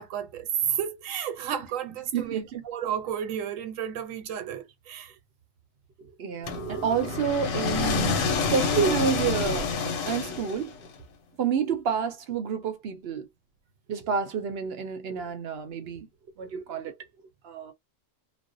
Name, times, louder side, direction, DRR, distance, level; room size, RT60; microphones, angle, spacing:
voice 1, 0.0-5.1, right 9 dB, 85° right, 1.0 m, -32 dB
voice 2, 2.1-2.6 6.2-10.7 11.4-13.3 13.9-16.1 16.4-16.9 17.4-17.7, right 6 dB, 65° right, 0.7 m, -29 dB
sound 1, 6.5-10.9, left 5 dB, 80° left, 1.1 m, -28 dB
2.4 x 2.0 x 2.5 m
omnidirectional pair, 1.3 m